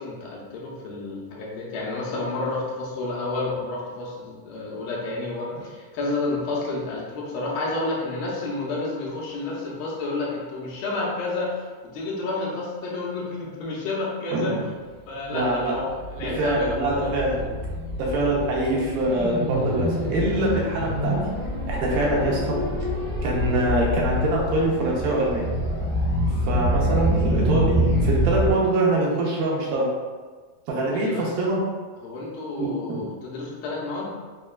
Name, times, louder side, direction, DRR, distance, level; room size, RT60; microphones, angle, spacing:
voice 1, 0.0-14.6 15.1-17.1 30.9-31.3 32.0-34.1, left 2 dB, 80° left, -4 dB, 2.3 m, -30 dB
voice 2, 14.3-14.6 15.3-15.8 16.2-17.4 18.0-21.2 21.7-22.6 23.2-25.5 26.5-29.9 30.7-31.6 32.6-33.0, right 1 dB, 85° right, -3 dB, 2.5 m, -24 dB
sound 1, 15.4-28.5, equal, 60° right, 1.3 m, -26 dB
6.2 x 2.3 x 2.2 m, 1.4 s
omnidirectional pair, 4.1 m